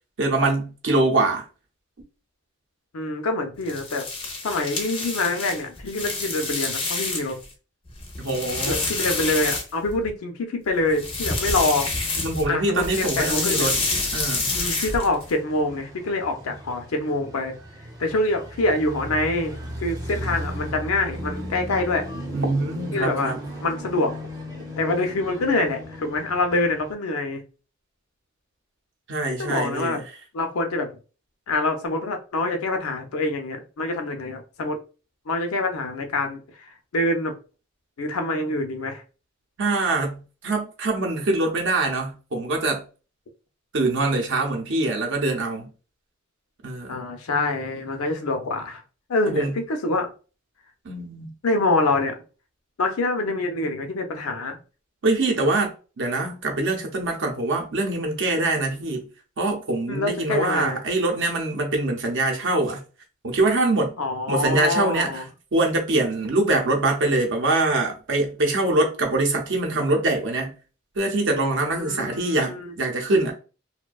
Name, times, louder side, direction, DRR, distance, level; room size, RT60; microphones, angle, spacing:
voice 1, 0.2-1.4 8.2-8.9 12.2-13.8 14.1-14.5 22.3-23.4 29.1-30.0 39.6-42.8 43.7-45.7 46.6-47.0 49.3-49.6 50.8-51.3 55.0-59.1 59.4-62.8 63.2-63.9 64.3-65.2 65.5-70.5 71.0-73.3, right 2 dB, 60° right, 0.7 m, -24 dB
voice 2, 2.9-4.0 4.4-7.4 8.7-11.9 12.5-13.7 14.5-17.5 18.0-22.1 22.9-23.3 23.6-24.1 24.8-27.4 29.4-30.0 30.3-30.9 31.5-34.8 35.3-37.3 38.0-39.0 46.9-48.8 49.1-50.1 51.4-52.2 52.8-54.6 59.9-60.8 64.0-65.2 71.8-72.7, left 2 dB, 90° left, 0.5 m, -25 dB
sound 1, 3.6-7.4 7.9-10.1 10.9-12.5 12.8-15.3, left 3 dB, 25° left, 0.5 m, -28 dB
sound 2, 10.8-26.9, equal, 20° right, 0.6 m, -37 dB
2.6 x 2.1 x 2.3 m
head